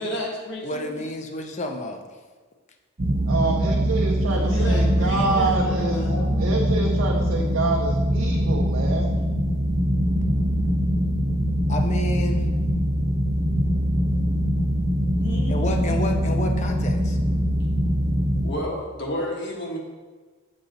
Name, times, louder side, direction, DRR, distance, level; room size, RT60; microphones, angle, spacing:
voice 1, 0.0-1.0 4.2-6.8 15.2-17.4 18.4-19.8, left 1 dB, 60° left, -1 dB, 1.2 m, -33 dB
voice 2, 0.6-2.2 11.7-12.5 15.5-17.2, left 1 dB, 35° left, 4 dB, 0.6 m, -30 dB
sound 1, 3.0-18.5, equal, 50° right, 0.8 m, -23 dB
voice 3, 3.3-9.2, right 3 dB, 80° right, 0 dB, 0.6 m, -27 dB
7.1 x 3.9 x 3.9 m, 1.4 s
head